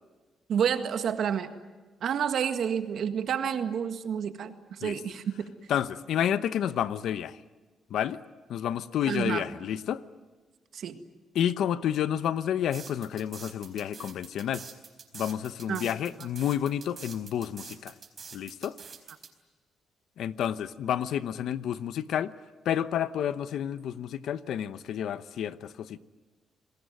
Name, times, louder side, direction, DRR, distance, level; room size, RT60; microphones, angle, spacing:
voice 1, 0.5-1.5 2.0-5.5 9.1-9.5 10.7-11.0 15.7-15.9, right 8 dB, 65° right, 1.8 m, -29 dB
voice 2, 5.7-7.4 7.9-8.2 8.5-10.0 11.3-14.6 15.1-17.9 18.3-18.8 20.2-22.3 22.6-26.0, left 10 dB, 80° left, 0.9 m, -30 dB
sound 1, 12.7-19.3, right 6 dB, 45° right, 4.3 m, -45 dB
29.0 x 20.0 x 9.4 m
cardioid pair, 95°, 0 cm